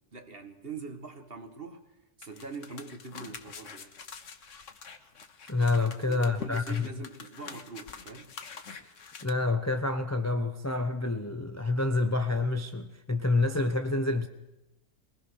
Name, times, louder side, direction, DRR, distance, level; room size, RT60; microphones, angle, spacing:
voice 1, 0.1-1.8 2.2-3.9 6.0-8.3, right 3 dB, 35° right, 1.9 m, -43 dB
sound 1, 2.2-9.3, left 5 dB, 50° left, 1.5 m, -46 dB
voice 2, 5.5-6.9 9.2-14.3, left 3 dB, 15° left, 0.7 m, -28 dB
22.0 x 18.5 x 6.5 m
omnidirectional pair, 1.7 m